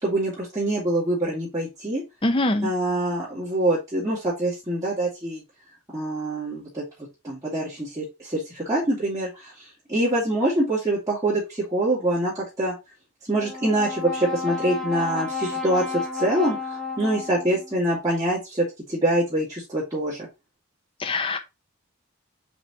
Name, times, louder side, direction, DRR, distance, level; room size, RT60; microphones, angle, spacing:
voice 1, 0.0-2.0 2.6-5.4 5.9-6.8 7.2-12.7 13.3-20.3, right 1 dB, 15° right, 2.7 m, -25 dB
voice 2, 2.2-2.7 21.0-21.4, left 2 dB, 25° left, 0.7 m, -23 dB
Brass instrument, 13.4-17.8, left 4 dB, ahead, 1.0 m, -31 dB
5.1 x 5.1 x 4.2 m
head